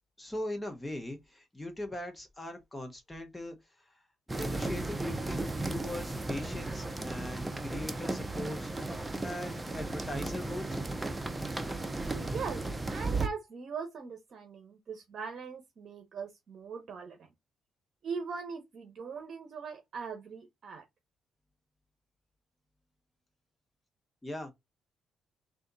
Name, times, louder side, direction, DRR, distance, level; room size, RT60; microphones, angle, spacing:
voice 1, 0.2-4.0 4.3-8.7 9.2-10.8 12.0-12.1 24.2-24.5, left 1 dB, 15° left, 1.0 m, -40 dB
sound 1, 4.3-13.3, right 2 dB, 15° right, 0.6 m, -35 dB
voice 2, 12.3-12.6 12.9-17.3 18.0-20.8, right 5 dB, 55° right, 0.9 m, -40 dB
3.5 x 2.5 x 3.9 m
cardioid pair, 90°, 0 cm